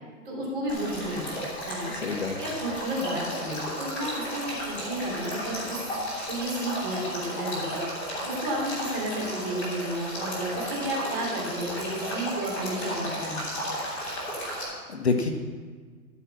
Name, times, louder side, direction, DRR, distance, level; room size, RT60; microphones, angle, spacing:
voice 1, 0.2-1.9 2.4-5.9 6.2-7.8 8.2-13.5, right 1 dB, 35° right, -3 dB, 2.9 m, -32 dB
Male speech man speaking / Stream / Trickle dribble, 0.7-14.6, equal, 5° left, 1.1 m, -34 dB
voice 2, 1.9-2.4 14.5-15.3, left 4 dB, 45° left, 4 dB, 0.8 m, -28 dB
12.5 x 4.8 x 7.1 m, 1.5 s
hypercardioid pair, 175°, 45 cm